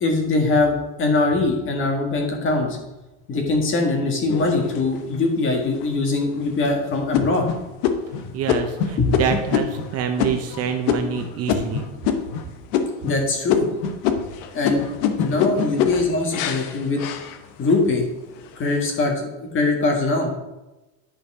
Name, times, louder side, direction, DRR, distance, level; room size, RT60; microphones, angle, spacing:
voice 1, 0.0-2.8 3.3-7.5 9.0-9.2 13.0-13.7 14.5-14.8 15.2-17.1 17.6-18.1 18.6-20.3, left 3 dB, 30° left, 2 dB, 1.8 m, -22 dB
sound 1, 4.3-5.2 5.7-5.8 6.3-6.7 7.1-12.4 12.7-13.2 13.5-17.8 18.3-18.8, left 7 dB, 65° left, 1.0 m, -25 dB
voice 2, 8.3-11.9, right 7 dB, 40° right, 6 dB, 0.7 m, -26 dB
10.5 x 5.2 x 4.8 m, 1.0 s
cardioid pair, 150°, 40 cm